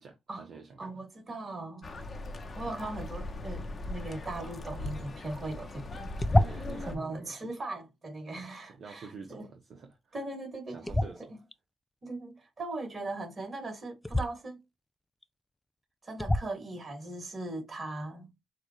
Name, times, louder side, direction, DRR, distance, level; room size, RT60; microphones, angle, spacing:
voice 1, 0.0-1.0 6.3-7.5 8.4-10.1 10.7-11.4, right 5 dB, 55° right, 0.9 m, -48 dB
voice 2, 0.8-1.9 2.6-6.1 6.5-9.5 10.1-10.9 11.3-11.4 12.0-14.6 16.0-18.3, right 2 dB, 35° right, 2.8 m, -39 dB
sound 1, 1.8-7.0, left 2 dB, 35° left, 0.9 m, -39 dB
sound 2, 6.2-6.9 10.8-11.5 14.0-14.3 15.2-15.3 16.2-16.6, left 1 dB, 10° left, 0.4 m, -27 dB
6.3 x 2.4 x 3.1 m
cardioid pair, 90°, 0 cm